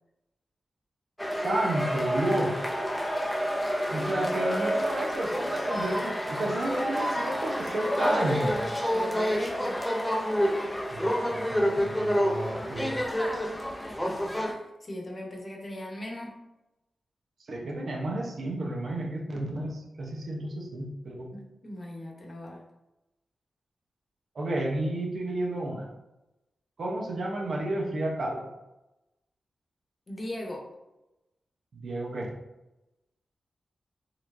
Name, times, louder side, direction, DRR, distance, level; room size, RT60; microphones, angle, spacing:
sound 1, 1.2-14.5, equal, 5° left, 0.6 m, -28 dB
voice 1, 1.4-2.7 3.9-8.6 10.9-13.0 17.5-21.3 24.3-25.9 26.8-28.5 31.7-32.3, right 1 dB, 70° right, -1 dB, 0.9 m, -31 dB
voice 2, 8.9-9.9 13.9-16.4 21.3-22.6 30.1-30.7, left 1 dB, 40° left, 0 dB, 1.0 m, -39 dB
4.1 x 3.1 x 2.6 m, 0.95 s
cardioid pair, 70°, 0 cm